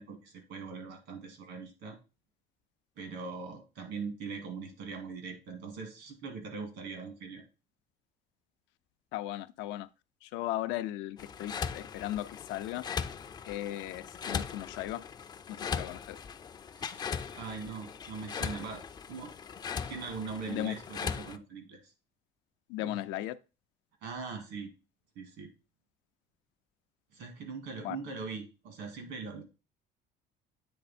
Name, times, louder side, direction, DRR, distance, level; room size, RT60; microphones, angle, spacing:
voice 1, 0.0-2.0 3.0-7.4 16.7-17.1 17.4-18.8 19.1-19.3 19.9-21.9 22.8-23.0 24.0-24.7 25.2-25.5 27.1-29.4, right 5 dB, 80° right, 2.1 m, -41 dB
voice 2, 9.1-9.9 10.2-12.8 13.4-15.0 15.5-16.2 20.5-20.7 22.7-23.3 27.8-28.0, left 14 dB, 85° left, 0.5 m, -36 dB
sound 1, 11.2-21.4, left 6 dB, 20° left, 0.3 m, -39 dB
8.6 x 3.5 x 4.2 m
cardioid pair, 145°, 19 cm